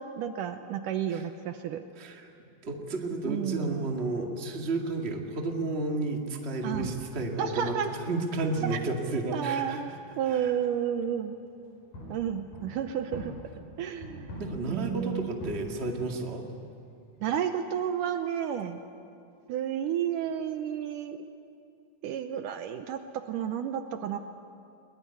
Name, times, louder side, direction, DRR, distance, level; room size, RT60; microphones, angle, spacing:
voice 1, 0.0-1.9 3.3-3.9 6.6-6.9 7.4-7.9 8.7-8.8 9.3-11.4 12.1-13.3 13.8-14.3 14.7-15.3 17.2-18.8 19.5-21.2 22.0-24.2, right 9 dB, 75° right, 8 dB, 2.2 m, -31 dB
voice 2, 2.0-2.3 2.6-9.8 10.3-10.5 14.4-16.5, right 2 dB, 25° right, 2 dB, 1.7 m, -32 dB
sound 1, 6.7-11.1 11.3-17.4, equal, 65° left, 6.6 m, -45 dB
22.0 x 21.5 x 9.9 m, 2.5 s
omnidirectional pair, 4.1 m